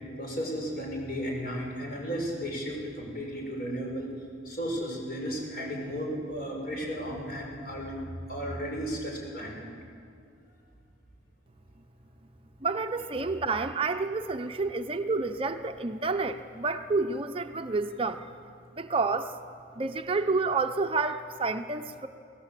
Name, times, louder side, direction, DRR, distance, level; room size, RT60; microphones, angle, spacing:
voice 1, 0.2-4.1 4.4-8.0 8.3-9.7, equal, 50° left, 0 dB, 6.1 m, -34 dB
voice 2, 12.6-18.3 18.8-19.3 19.8-22.1, right 3 dB, 30° right, 7 dB, 0.7 m, -29 dB
29.0 x 19.0 x 8.3 m, 2.4 s
head